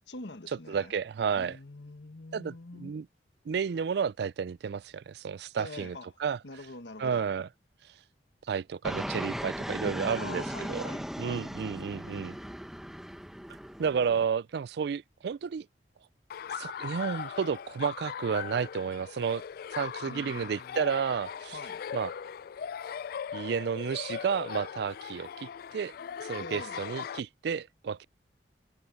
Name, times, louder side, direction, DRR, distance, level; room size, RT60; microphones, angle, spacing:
voice 1, 0.0-0.9 1.4-3.0 5.6-6.1 6.4-7.3 10.1-11.5 20.1-20.8 21.5-21.9 26.4-26.8, left 2 dB, 80° left, 1.5 m, -45 dB
voice 2, 0.7-1.6 2.3-3.1 3.5-6.4 7.0-7.5 8.5-10.8 11.2-12.4 13.8-15.7 16.6-19.4 19.7-21.6 21.9-22.1 23.3-25.9 26.2-28.0, right 6 dB, 65° right, 0.4 m, -31 dB
Fixed-wing aircraft airplane, 8.8-14.2, equal, ahead, 0.8 m, -37 dB
Laughter, 16.3-27.2, left 7 dB, 55° left, 0.3 m, -39 dB
head